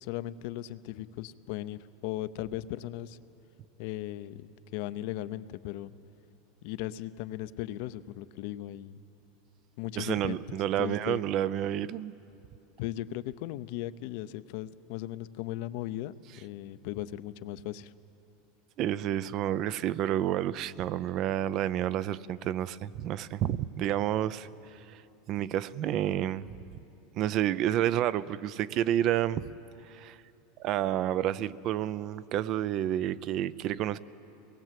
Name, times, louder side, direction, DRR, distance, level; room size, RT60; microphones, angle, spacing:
voice 1, 0.0-3.2 3.8-5.9 6.6-9.0 9.8-11.2 12.8-17.9, left 14 dB, 65° left, 14 dB, 0.7 m, -37 dB
voice 2, 10.0-12.1 18.8-25.0 25.3-26.5 27.1-29.5 29.9-30.2 30.6-34.0, right 11 dB, 45° right, 18 dB, 0.5 m, -30 dB
23.5 x 19.5 x 7.6 m, 3.0 s
supercardioid pair, 125°, 0 cm